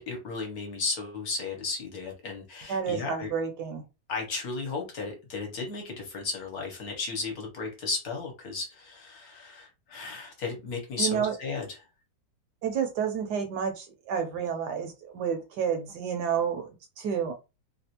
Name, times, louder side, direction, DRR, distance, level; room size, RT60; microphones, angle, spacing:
voice 1, 0.0-3.3 4.1-11.6, left 3 dB, 60° left, 1 dB, 1.2 m, -34 dB
voice 2, 2.7-3.8 11.0-11.3 12.6-16.7 17.0-17.3, right 7 dB, 70° right, 5 dB, 1.1 m, -30 dB
3.2 x 2.4 x 2.8 m, 0.27 s
omnidirectional pair, 2.0 m